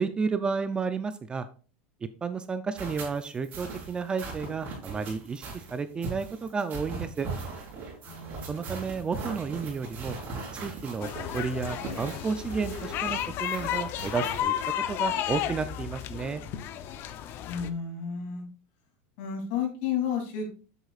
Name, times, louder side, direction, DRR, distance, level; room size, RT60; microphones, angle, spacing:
voice 1, 0.0-1.5 2.0-7.3 8.5-10.2 10.6-14.5 14.9-16.4, right 5 dB, 15° right, 11 dB, 0.4 m, -32 dB
sound 1, 2.8-14.4, right 4 dB, 30° right, 4.5 m, -39 dB
voice 2, 8.1-8.6 17.4-18.4 19.2-20.5, left 7 dB, 55° left, 3 dB, 2.9 m, -32 dB
sound 2, 11.0-17.7, left 11 dB, 35° left, 0.6 m, -32 dB
11.0 x 8.0 x 2.4 m, 0.36 s
supercardioid pair, 160°, 6 cm